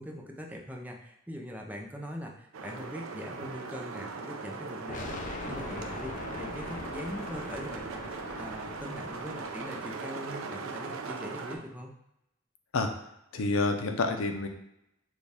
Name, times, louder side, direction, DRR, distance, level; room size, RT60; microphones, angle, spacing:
voice 1, 0.0-11.9, equal, 10° right, 1 dB, 0.5 m, -42 dB
sound 1, 2.5-11.6, right 4 dB, 90° right, 0.5 m, -39 dB
sound 2, 4.9-9.8, left 3 dB, 40° left, 0.4 m, -42 dB
voice 2, 13.3-14.5, left 3 dB, 85° left, 5 dB, 0.6 m, -28 dB
6.3 x 2.3 x 3.5 m, 0.83 s
head